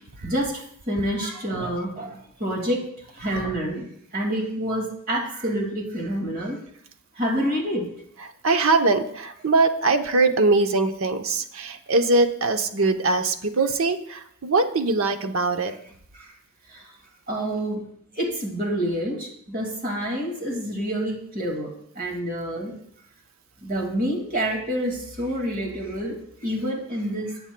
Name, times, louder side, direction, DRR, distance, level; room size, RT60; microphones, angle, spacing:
voice 1, 0.2-2.8 3.1-3.9 4.1-6.6 7.2-7.9 15.7-15.8 16.1-16.3 16.7-16.9 17.3-17.9 18.1-22.7 23.6-27.4, equal, 45° right, 1 dB, 2.1 m, -28 dB
voice 2, 8.4-15.7, right 3 dB, 75° right, 7 dB, 0.8 m, -22 dB
17.5 x 8.0 x 2.2 m, 0.67 s
head